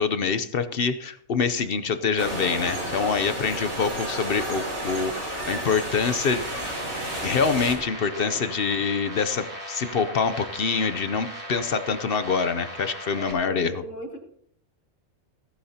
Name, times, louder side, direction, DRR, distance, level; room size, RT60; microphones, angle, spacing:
voice 1, 0.0-6.5 7.2-13.8, left 5 dB, 55° left, 11 dB, 0.8 m, -25 dB
voice 2, 1.4-1.7 3.2-3.5 8.1-8.5 13.2-14.2, equal, 75° left, 2 dB, 2.6 m, -37 dB
sound 1, 2.2-7.7, right 1 dB, 65° right, 3.7 m, -31 dB
sound 2, 6.3-13.3, equal, 30° right, 4.4 m, -38 dB
16.0 x 15.5 x 2.8 m, 0.67 s
omnidirectional pair, 1.3 m